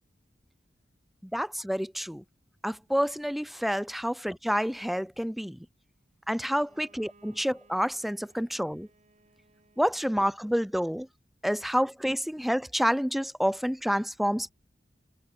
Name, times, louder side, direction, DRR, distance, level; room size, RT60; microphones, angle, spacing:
voice 1, 1.3-2.2 2.6-5.6 6.3-8.9 9.8-11.1 11.4-14.5, equal, ahead, 0.4 m, -28 dB
Bowed string instrument, 6.4-11.1, right 2 dB, 45° right, 6.4 m, -63 dB
head